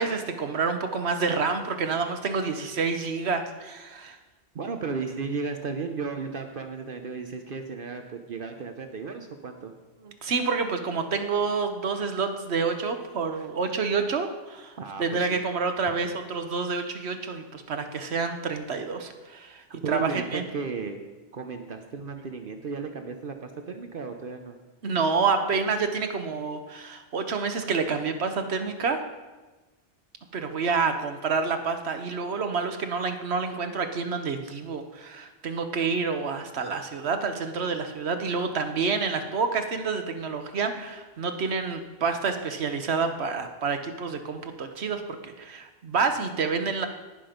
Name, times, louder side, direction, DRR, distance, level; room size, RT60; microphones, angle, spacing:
voice 1, 0.0-4.2 10.0-20.4 24.8-29.0 30.3-46.9, right 5 dB, 85° right, 7 dB, 1.3 m, -28 dB
voice 2, 4.5-9.7 14.8-15.4 19.8-21.0 21.3-24.6, right 5 dB, 60° right, 6 dB, 1.0 m, -34 dB
18.0 x 6.0 x 5.1 m, 1.2 s
omnidirectional pair, 1.1 m